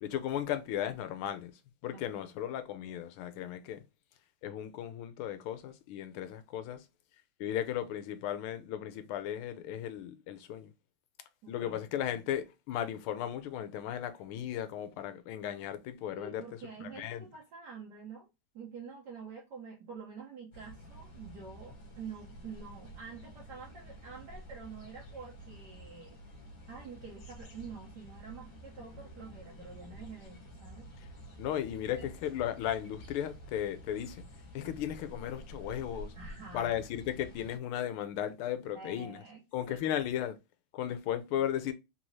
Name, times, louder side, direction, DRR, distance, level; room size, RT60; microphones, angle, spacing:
voice 1, 0.0-1.5 1.8-3.8 4.4-6.8 7.4-10.7 11.5-16.4 16.8-17.3 31.4-34.2 34.5-36.1 36.5-39.2 39.5-40.4 40.7-41.7, left 10 dB, 80° left, 1.5 m, -36 dB
voice 2, 1.9-2.2 11.4-11.9 16.2-18.3 18.5-26.2 26.7-30.9 32.0-32.1 36.1-36.7 38.7-39.8, right 5 dB, 60° right, 1.3 m, -47 dB
sound 1, 20.5-37.6, equal, 55° left, 1.6 m, -50 dB
3.9 x 3.1 x 2.6 m
omnidirectional pair, 2.4 m